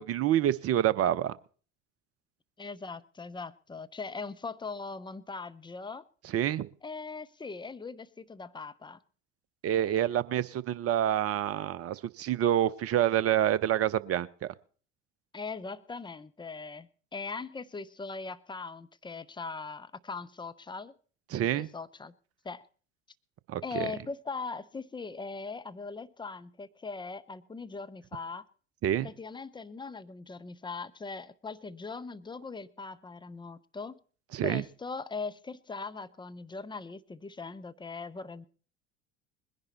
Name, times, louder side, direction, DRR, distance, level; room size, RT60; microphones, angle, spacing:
voice 1, 0.0-1.3 6.2-6.7 9.6-14.5 21.3-21.7 23.5-23.9 28.8-29.1 34.3-34.6, right 11 dB, 40° right, 19 dB, 0.9 m, -27 dB
voice 2, 2.6-6.0 6.8-9.0 15.3-20.9 21.5-22.1 22.4-22.6 23.6-28.5 29.0-34.0 34.4-38.5, left 4 dB, 15° left, 14 dB, 0.8 m, -40 dB
21.0 x 10.5 x 4.2 m, 0.42 s
hypercardioid pair, 70°, 36 cm